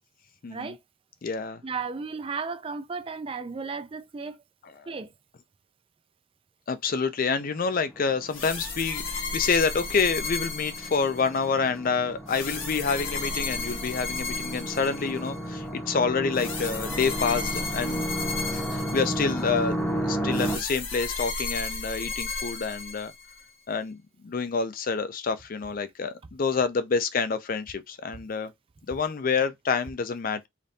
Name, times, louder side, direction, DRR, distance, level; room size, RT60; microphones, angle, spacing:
voice 1, 0.4-0.8 1.2-1.6 6.7-9.0 9.3-18.1 18.5-19.8 20.0-23.1 23.7-24.0 24.2-28.5 28.9-30.5, left 5 dB, 45° left, 0.4 m, -27 dB
voice 2, 1.6-4.4 4.9-5.1, right 4 dB, 25° right, 0.4 m, -34 dB
sound 1, 7.4-20.6, right 1 dB, 10° left, 0.7 m, -33 dB
sound 2, 8.3-11.5 12.3-15.4 16.3-19.5 20.3-23.4, left 4 dB, 75° left, 1.3 m, -34 dB
5.0 x 2.6 x 2.7 m
head